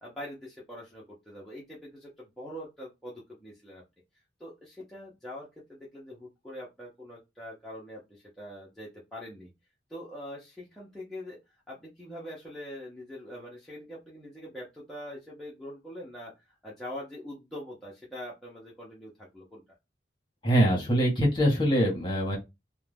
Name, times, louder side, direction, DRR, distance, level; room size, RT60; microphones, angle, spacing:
voice 1, 0.0-3.8 4.4-9.5 9.9-11.4 11.7-19.6, equal, ahead, 0.7 m, -43 dB
voice 2, 20.4-22.4, equal, 25° left, 1.1 m, -23 dB
2.6 x 2.2 x 3.3 m
head